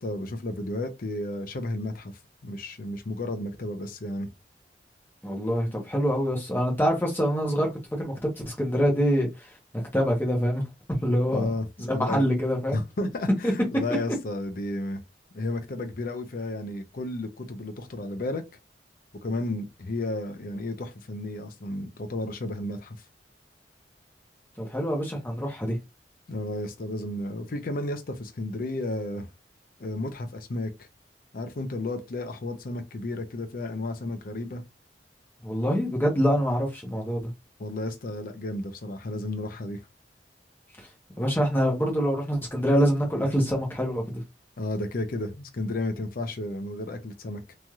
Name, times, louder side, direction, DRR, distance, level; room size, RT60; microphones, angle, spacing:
voice 1, 0.0-2.1 2.4-4.3 11.3-12.3 12.7-15.0 15.3-18.4 19.2-23.0 26.3-29.3 29.8-30.9 31.3-34.6 37.6-39.8 44.6-47.6, left 2 dB, 55° left, 0.6 m, -32 dB
voice 2, 5.2-9.5 9.9-10.6 11.0-11.5 11.9-12.8 13.4-13.5 24.6-25.8 35.4-37.3 40.8-40.9 41.2-44.2, equal, 10° left, 0.9 m, -25 dB
3.1 x 2.7 x 2.3 m
head